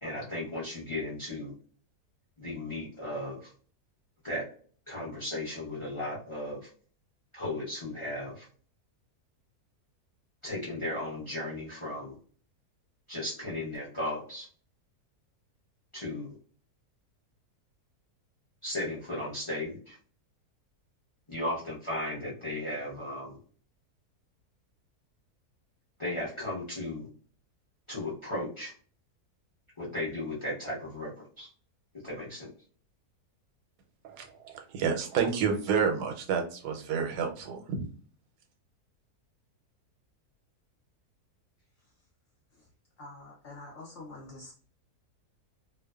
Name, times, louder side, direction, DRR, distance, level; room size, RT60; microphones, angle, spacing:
voice 1, 0.0-1.5 2.4-3.5 4.2-4.4 4.9-6.7 7.3-8.5 10.4-12.2 13.1-14.5 15.9-16.3 18.6-20.0 21.3-23.4 26.0-27.1 27.9-28.7 29.8-31.5 32.0-32.5, left 1 dB, 30° left, -6 dB, 0.6 m, -35 dB
voice 2, 34.0-37.9, right 6 dB, 90° right, 4 dB, 1.2 m, -30 dB
voice 3, 43.0-44.5, left 2 dB, 70° left, -1 dB, 0.7 m, -46 dB
2.6 x 2.1 x 2.2 m, 0.44 s
omnidirectional pair, 1.7 m